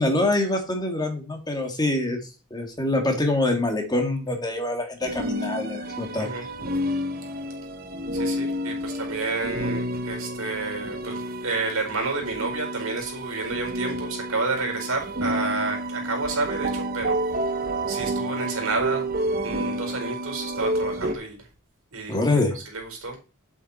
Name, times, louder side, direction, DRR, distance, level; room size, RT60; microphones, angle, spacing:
voice 1, 0.0-2.2 2.5-6.3 22.1-22.6, left 2 dB, 20° left, 2.2 m, -25 dB
sound 1, 5.0-21.1, right 1 dB, 45° right, 1.0 m, -30 dB
voice 2, 8.1-17.2 17.9-19.0 19.4-21.4 21.9-22.2 22.5-23.2, right 3 dB, 75° right, 4.5 m, -30 dB
8.9 x 8.2 x 4.3 m
head